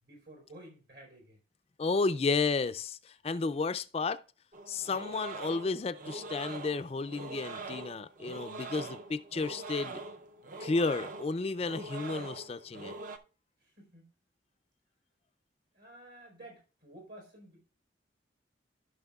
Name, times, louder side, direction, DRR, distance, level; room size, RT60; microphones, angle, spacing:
voice 1, 0.0-1.4 13.6-14.1 15.7-17.6, right 1 dB, 75° right, 4.1 m, -52 dB
voice 2, 1.8-4.2 4.7-10.0 10.6-12.9, left 4 dB, 30° left, 0.3 m, -32 dB
sound 1, 4.5-13.2, right 3 dB, 45° right, 0.5 m, -43 dB
14.5 x 6.0 x 2.3 m
head